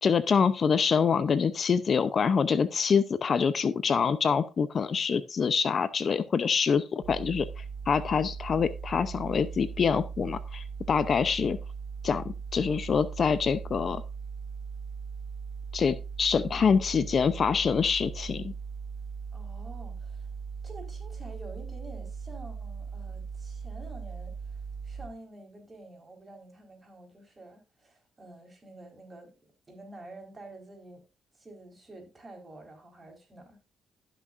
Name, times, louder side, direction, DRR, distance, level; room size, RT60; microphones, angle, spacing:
voice 1, 0.0-11.6 12.0-14.0 15.7-18.5, left 6 dB, 45° left, 0.6 m, -26 dB
sound 1, 7.0-25.1, right 5 dB, 75° right, 2.2 m, -39 dB
voice 2, 19.3-20.3 20.6-29.3 29.7-31.0 31.3-33.6, right 2 dB, 25° right, 4.2 m, -48 dB
15.5 x 6.2 x 2.5 m
cardioid pair, 90°, 0 cm